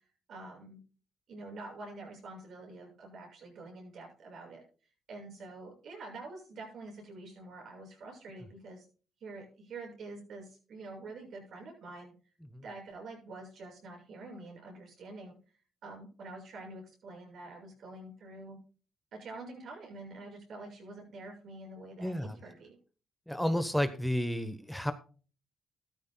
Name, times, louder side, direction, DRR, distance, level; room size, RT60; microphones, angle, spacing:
voice 1, 0.3-0.8 1.3-4.6 5.1-8.9 9.2-12.1 12.6-15.4 15.8-18.6 19.1-22.8, right 2 dB, 65° right, 1 dB, 6.7 m, -46 dB
voice 2, 22.0-22.4 23.3-24.9, equal, ahead, 10 dB, 1.0 m, -31 dB
14.5 x 13.0 x 2.3 m, 0.37 s
cardioid pair, 90°, 0 cm